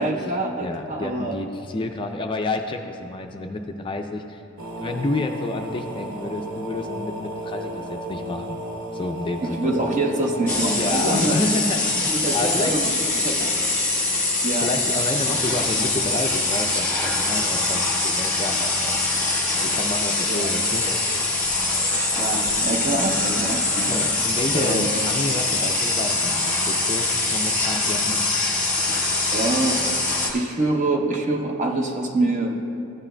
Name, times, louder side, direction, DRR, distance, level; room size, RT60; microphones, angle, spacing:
voice 1, 0.0-1.4 9.4-11.4 12.1-12.8 14.4-14.7 20.3-20.5 22.2-23.9 24.5-24.9 29.3-29.8 30.3-32.6, right 2 dB, 35° right, 2 dB, 0.8 m, -25 dB
voice 2, 0.6-4.4 4.8-8.6 8.9-9.7 10.7-12.7 14.5-18.9 19.6-20.8 23.9-28.2, left 2 dB, 25° left, 4 dB, 0.3 m, -29 dB
sound 1, 4.6-11.2, right 1 dB, 70° right, 0.8 m, -33 dB
sound 2, 10.5-30.3, left 2 dB, 10° left, 1.2 m, -23 dB
14.5 x 9.7 x 2.2 m, 2.8 s
head